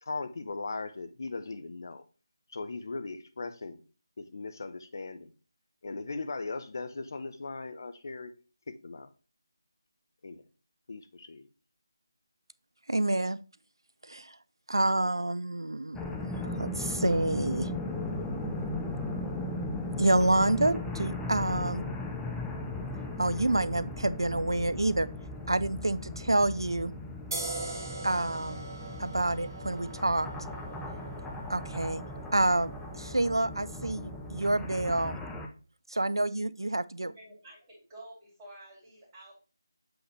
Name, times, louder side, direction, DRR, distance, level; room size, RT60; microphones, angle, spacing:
voice 1, 0.0-2.0 2.5-3.8 4.2-5.3 5.8-8.3 8.7-9.1 10.2-10.4 10.9-11.5, left 3 dB, 50° left, 0.7 m, -38 dB
voice 2, 12.9-13.4 14.1-14.3 14.7-17.7 20.0-21.8 23.2-25.1 25.5-26.9 28.0-28.7 29.0-30.3 31.5-32.0 32.3-35.2 35.9-37.1, right 2 dB, 80° right, 0.4 m, -28 dB
sound 1, 15.9-35.5, left 2 dB, 5° left, 0.5 m, -37 dB
sound 2, 27.3-34.6, right 2 dB, 50° right, 1.7 m, -42 dB
voice 3, 37.0-39.3, right 1 dB, 15° right, 3.0 m, -50 dB
7.8 x 4.1 x 3.2 m
figure-of-eight pair, 160°, 2 cm